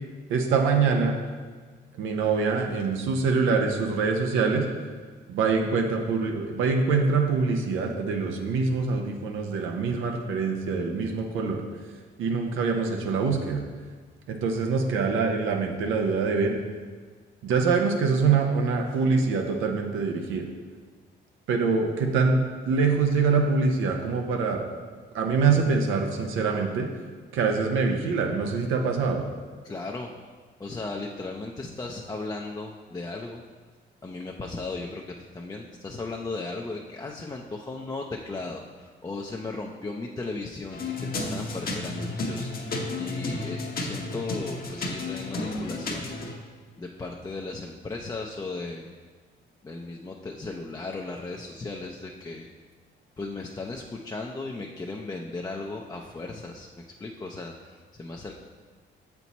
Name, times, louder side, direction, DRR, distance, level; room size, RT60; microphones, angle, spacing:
voice 1, 0.3-1.2 2.0-4.7 5.3-11.6 12.2-13.6 14.3-16.6 17.4-20.4 21.5-22.4 22.6-24.6 25.1-26.9 27.3-29.2, right 4 dB, 85° right, 2 dB, 0.7 m, -24 dB
voice 2, 29.6-30.1 30.6-33.4 34.0-42.5 43.0-46.1 46.8-48.9 49.6-52.5 53.2-56.7 57.0-58.3, left 3 dB, 20° left, 0 dB, 0.5 m, -36 dB
sound 1, 40.7-46.4, left 2 dB, 50° left, 0.9 m, -32 dB
6.9 x 4.5 x 4.1 m, 1.5 s
cardioid pair, 90°, 20 cm